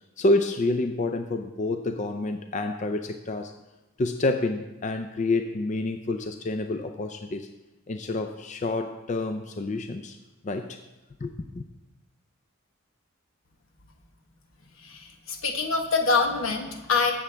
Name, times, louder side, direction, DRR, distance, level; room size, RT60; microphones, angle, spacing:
voice 1, 0.2-3.5 4.0-7.5 7.9-10.2 10.4-10.8 11.2-11.6, left 2 dB, 35° left, 6 dB, 0.4 m, -28 dB
voice 2, 14.8-17.1, left 4 dB, 80° left, 4 dB, 1.3 m, -25 dB
16.0 x 7.0 x 3.4 m, 1.1 s
head